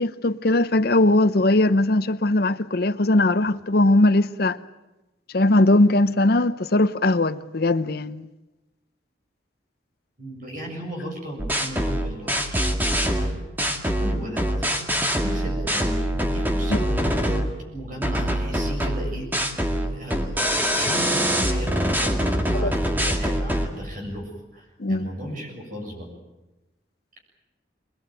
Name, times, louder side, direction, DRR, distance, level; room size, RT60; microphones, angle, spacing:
voice 1, 0.0-4.6 5.3-8.3 16.7-16.8 22.5-22.7 24.8-25.1, left 2 dB, 55° left, 0.8 m, -20 dB
voice 2, 10.2-12.7 13.0-13.3 13.7-14.4 15.0-16.0 16.3-17.4 17.7-19.3 19.8-20.5 20.7-26.1, equal, 45° right, 7.1 m, -36 dB
sound 1, 11.4-17.6 18.0-23.7, equal, 10° right, 2.0 m, -24 dB
24.5 x 20.5 x 9.1 m
head